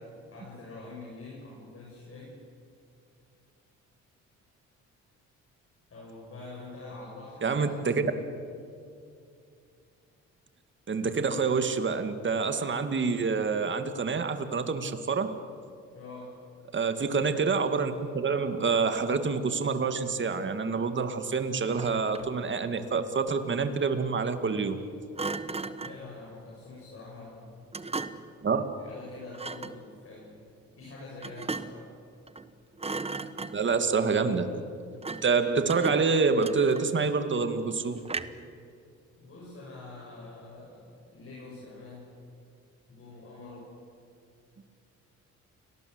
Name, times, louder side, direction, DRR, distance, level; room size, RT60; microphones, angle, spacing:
voice 1, 0.0-2.4 5.9-7.7 15.9-16.5 25.8-27.7 28.8-30.4 30.7-31.9 39.2-42.2 42.9-43.8, left 2 dB, 45° left, -4 dB, 7.2 m, -45 dB
voice 2, 7.4-8.1 10.9-15.3 16.7-24.8 28.4-28.6 33.5-34.5 35.1-38.0, right 4 dB, 40° right, 8 dB, 2.3 m, -27 dB
Thump thud, 21.6-22.4 25.2-26.1 27.7-28.4 29.3-29.8 31.2-31.9 32.3-32.5 32.8-33.8 35.0-35.4 35.7-37.1 38.1-38.5, right 3 dB, 20° right, 1.2 m, -37 dB
29.5 x 19.0 x 8.1 m, 2.4 s
cardioid pair, 90°, 30 cm